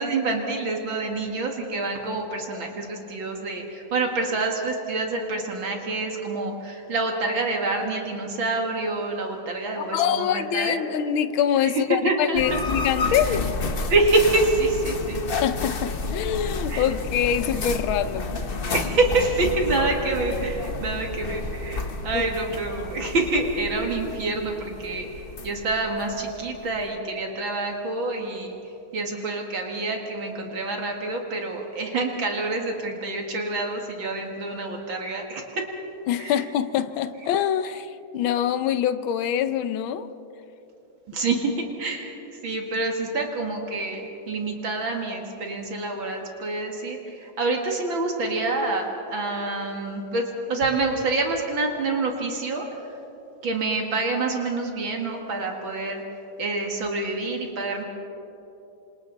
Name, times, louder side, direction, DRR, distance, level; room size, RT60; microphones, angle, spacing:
voice 1, 0.0-10.8 11.7-12.6 13.3-13.4 13.9-15.2 16.7-16.9 18.7-25.1 25.4-28.6 28.9-35.7 36.2-36.3 41.1-41.5 41.8-42.2 42.4-52.7 53.4-56.0 56.4-57.8, right 3 dB, 65° right, 2.7 m, -27 dB
voice 2, 9.8-13.5 15.4-18.4 22.1-22.3 36.1-40.1, left 9 dB, 75° left, 1.6 m, -25 dB
sound 1, 12.3-26.9, left 3 dB, 40° left, 0.8 m, -31 dB
27.5 x 26.5 x 4.0 m
omnidirectional pair, 2.3 m